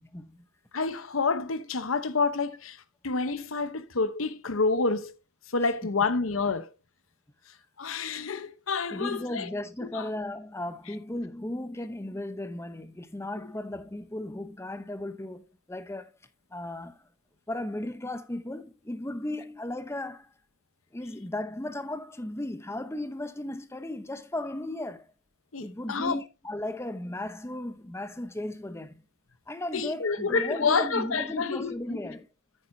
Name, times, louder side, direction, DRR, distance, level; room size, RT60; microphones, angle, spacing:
voice 1, 0.1-0.5 5.8-5.9 8.9-16.1 16.5-17.1 17.5-20.3 20.9-25.1 25.6-29.0 29.5-32.3, left 1 dB, 15° left, 0.8 m, -36 dB
voice 2, 0.7-5.1 5.5-6.7 7.8-9.5 9.9-10.1 25.5-26.2 29.7-32.0, left 4 dB, 90° left, 1.0 m, -28 dB
9.3 x 9.2 x 2.7 m
head